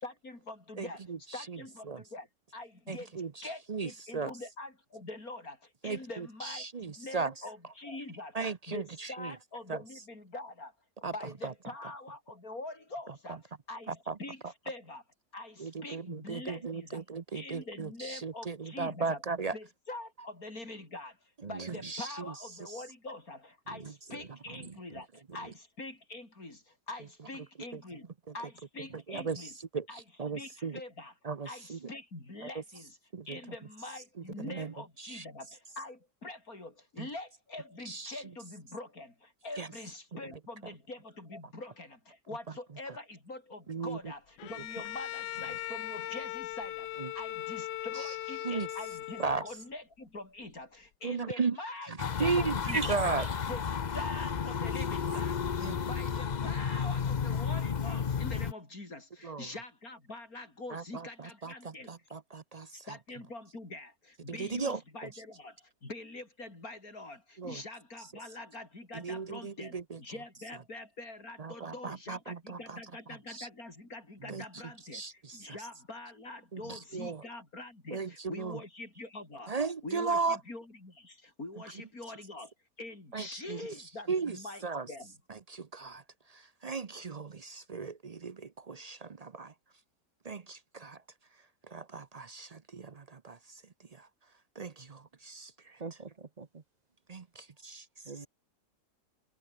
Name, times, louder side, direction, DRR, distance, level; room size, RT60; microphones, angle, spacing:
voice 1, 0.0-3.2 3.4-8.4 8.7-10.7 11.0-15.0 15.3-17.0 17.3-19.2 19.5-21.2 21.4-29.5 29.9-30.0 30.3-31.1 31.4-33.0 33.3-46.9 47.1-51.9 52.2-52.9 53.4-53.6 53.9-61.9 62.9-79.6 79.8-85.1, left 2 dB, 60° left, 6.2 m, -45 dB
voice 2, 0.8-1.6 1.9-2.0 2.9-4.3 5.8-7.3 8.3-9.3 9.7-9.8 11.0-11.1 11.4-11.5 13.3-13.4 14.1-14.2 15.6-19.5 21.7-22.3 22.6-22.7 27.7-27.8 29.1-30.8 31.2-31.8 32.4-32.5 33.1-33.4 34.4-34.7 35.0-35.2 37.0-37.1 37.9-38.2 39.6-39.7 43.7-44.0 47.0-47.1 47.9-48.1 48.4-48.7 49.2-49.4 51.0-51.6 52.2-52.6 52.9-53.2 55.6-55.8 59.2-59.5 60.7-62.9 64.3-64.8 67.4-67.6 68.9-70.0 71.4-72.8 73.3-73.5 74.3-74.4 74.9-75.6 76.5-77.2 77.9-78.6 79.5-80.4 83.1-83.6 84.1-84.4 84.6-84.9 85.3-86.0 86.3-89.5 90.2-91.0 91.7-93.6 93.9-94.1 94.6-95.8 97.1-97.9, right 4 dB, 50° right, 0.4 m, -36 dB
voice 3, 21.4-21.9 23.7-25.0 45.5-45.6 51.9-53.3 55.0-55.2 74.2-74.4 76.6-76.8 94.8-94.9 95.8-96.6 98.1-98.3, right 4 dB, 30° right, 0.9 m, -41 dB
Bowed string instrument, 44.4-49.7, left 14 dB, 90° left, 1.3 m, -39 dB
sound 1, 52.0-58.5, left 6 dB, 45° left, 0.6 m, -32 dB
omnidirectional pair, 1.8 m